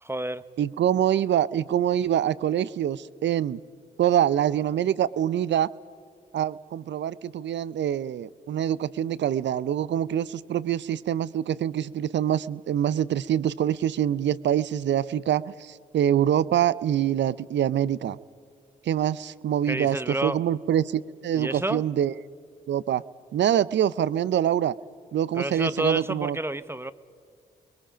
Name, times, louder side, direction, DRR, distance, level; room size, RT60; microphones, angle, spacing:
voice 1, 0.0-0.4 19.7-20.4 21.3-21.8 25.4-26.9, right 1 dB, 10° right, 14 dB, 0.9 m, -29 dB
voice 2, 0.6-3.6 4.0-5.7 6.3-18.2 18.8-22.1 22.7-23.0 23.3-24.7 25.1-26.4, right 10 dB, 60° right, 19 dB, 0.6 m, -25 dB
29.0 x 22.0 x 5.1 m, 2.3 s
hypercardioid pair, 40°, 21 cm